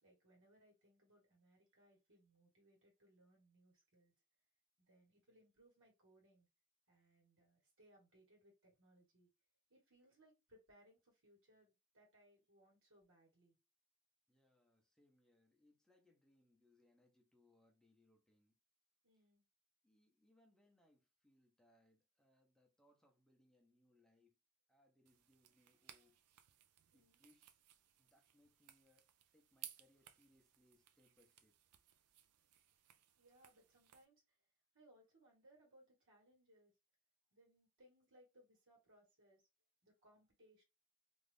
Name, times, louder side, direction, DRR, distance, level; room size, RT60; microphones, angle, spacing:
voice 1, 0.0-4.1 4.8-6.5 6.9-9.3 9.7-13.6 19.0-19.4 26.9-27.2 33.2-34.2 34.7-36.7 37.3-39.4 39.8-40.6, right 1 dB, 60° right, 1.4 m, -70 dB
voice 2, 14.3-18.5 19.8-24.4 24.7-26.2 26.9-27.5 28.0-29.1 29.3-31.5, left 1 dB, 5° left, 0.7 m, -74 dB
sound 1, 25.1-34.1, right 11 dB, 90° right, 0.4 m, -61 dB
2.6 x 2.4 x 3.3 m
head